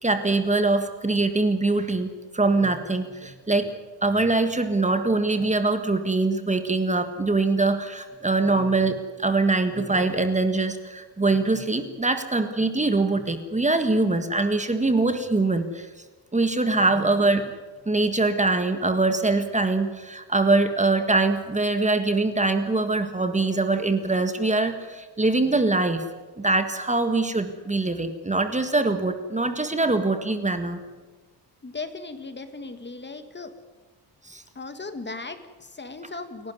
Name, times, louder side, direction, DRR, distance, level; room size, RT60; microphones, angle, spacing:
voice 1, 0.0-15.9 16.3-17.5 17.8-26.0 26.4-30.8 34.2-34.4, right 3 dB, 15° right, 8 dB, 1.6 m, -23 dB
voice 2, 31.6-33.5 34.6-36.5, left 3 dB, 25° left, 9 dB, 1.8 m, -37 dB
29.5 x 11.5 x 9.6 m, 1.3 s
cardioid pair, 130°, 42 cm